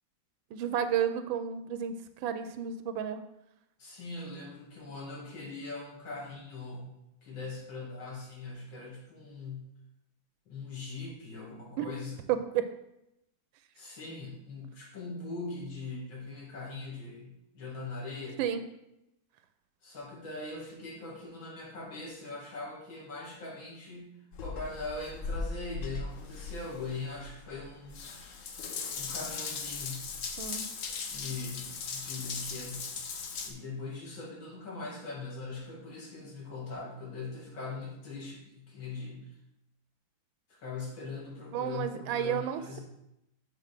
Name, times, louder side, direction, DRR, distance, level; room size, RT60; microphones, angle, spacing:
voice 1, 0.5-3.2 11.8-11.9 12.3-12.7 18.4-18.6 30.4-30.6 41.5-42.8, right 9 dB, 90° right, 9 dB, 1.3 m, -31 dB
voice 2, 3.8-9.7 10.5-12.2 13.7-18.4 19.8-24.1 24.4-28.0 29.0-30.1 31.1-32.9 33.4-39.3 40.5-42.8, left 3 dB, 85° left, -4 dB, 2.8 m, -41 dB
Water tap faucet / Bathtub (filling or washing) / Drip, 24.3-33.5, left 4 dB, 60° left, 0.8 m, -39 dB
7.0 x 3.7 x 5.9 m, 0.85 s
omnidirectional pair, 2.1 m